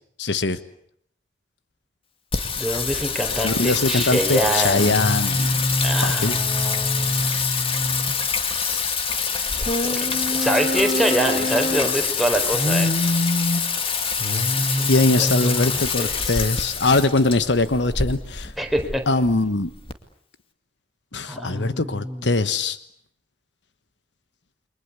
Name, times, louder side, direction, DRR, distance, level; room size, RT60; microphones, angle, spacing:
voice 1, 0.2-0.6 3.4-5.7 6.0-6.4 14.8-18.5 19.1-19.7 21.1-22.8, left 2 dB, 70° left, 12 dB, 1.3 m, -22 dB
Singing, 2.3-19.9, left 4 dB, 30° left, 2.3 m, -24 dB
voice 2, 2.6-5.0 5.8-7.3 9.8-12.9 14.8-15.5 16.0-16.4 18.6-19.0 21.3-22.3, right 1 dB, ahead, 3 dB, 4.4 m, -25 dB
29.5 x 23.5 x 8.4 m, 0.68 s
head